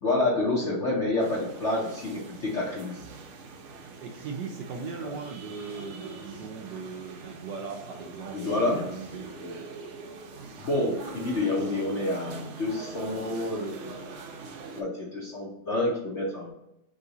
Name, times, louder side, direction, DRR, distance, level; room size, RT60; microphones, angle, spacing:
voice 1, 0.0-3.0 5.0-5.1 8.3-8.8 9.4-9.5 10.6-14.0 14.7-16.5, left 2 dB, 55° left, -4 dB, 0.8 m, -28 dB
sound 1, 1.2-14.8, right 3 dB, 85° right, 1.6 m, -43 dB
voice 2, 4.0-9.4, right 5 dB, 70° right, 1 dB, 1.1 m, -38 dB
3.8 x 3.2 x 3.9 m, 0.86 s
omnidirectional pair, 2.3 m